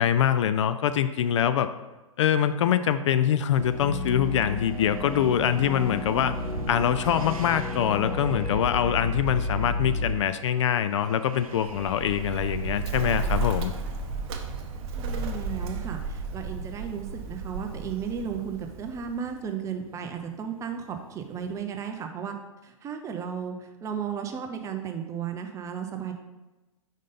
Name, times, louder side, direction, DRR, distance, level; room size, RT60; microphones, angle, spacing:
voice 1, 0.0-1.7 2.2-6.3 6.7-13.7, left 9 dB, 55° left, 12 dB, 0.4 m, -24 dB
sound 1, 3.5-21.6, right 5 dB, 85° right, 0.6 m, -46 dB
sound 2, 3.6-10.2, left 2 dB, 30° left, 0.8 m, -32 dB
Bird, 11.6-19.3, right 3 dB, 45° right, 0.8 m, -33 dB
voice 2, 14.9-22.4 22.6-26.1, right 7 dB, 15° right, 5 dB, 0.6 m, -34 dB
5.3 x 3.8 x 5.2 m, 1.1 s
hypercardioid pair, 125°, 18 cm